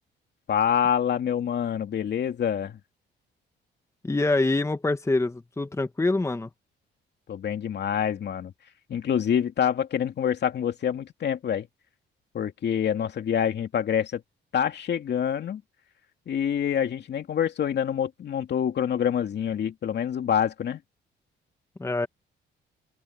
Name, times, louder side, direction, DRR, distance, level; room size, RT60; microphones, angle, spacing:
voice 1, 0.5-2.8 7.3-8.5 8.9-11.7 12.3-14.2 14.5-15.6 16.3-20.8, left 8 dB, 60° left, 2.6 m, -26 dB
voice 2, 4.0-6.5 21.8-22.1, left 2 dB, 15° left, 1.3 m, -25 dB
open air
cardioid pair, 90°, 20 cm